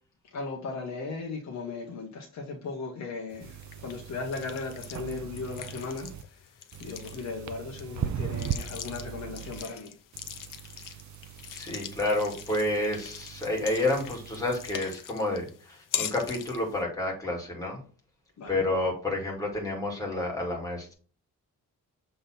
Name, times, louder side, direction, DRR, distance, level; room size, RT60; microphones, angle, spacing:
voice 1, 0.3-6.1 6.8-9.9 18.4-18.6, left 4 dB, 55° left, 1.2 m, -37 dB
sound 1, 3.3-16.8, left 10 dB, 70° left, 0.8 m, -42 dB
sound 2, 3.4-6.2 6.7-9.6 10.1-14.7, right 10 dB, 60° right, 0.6 m, -39 dB
voice 2, 11.5-17.8 18.5-20.9, left 2 dB, 10° left, 2.2 m, -30 dB
6.9 x 3.7 x 4.3 m
wide cardioid pair, 170°, 33 cm